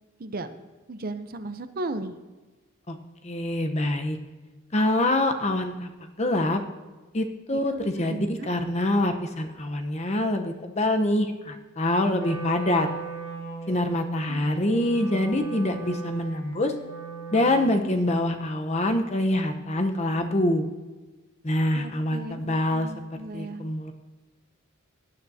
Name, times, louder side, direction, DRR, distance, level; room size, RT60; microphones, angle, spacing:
voice 1, 0.2-0.6 0.9-2.1 7.5-8.5 14.3-14.4 21.7-23.8, right 2 dB, 45° right, 10 dB, 0.6 m, -36 dB
voice 2, 3.2-4.2 4.7-6.6 7.1-12.9 13.7-16.7 17.3-20.6 21.4-22.9 23.3-23.9, left 1 dB, 30° left, 6 dB, 0.9 m, -25 dB
Wind instrument woodwind instrument, 12.1-18.1, right 5 dB, 55° left, 1.9 m, -38 dB
17.5 x 9.7 x 2.8 m, 1.2 s
head